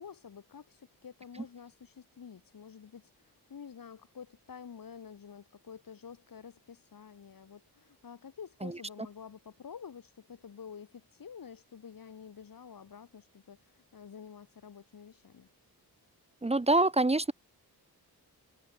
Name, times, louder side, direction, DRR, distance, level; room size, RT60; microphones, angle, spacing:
voice 1, 0.0-15.5, left 7 dB, 55° left, 5.1 m, -49 dB
voice 2, 16.4-17.3, right 2 dB, 15° right, 1.1 m, -25 dB
wide cardioid pair, 165°, 39 cm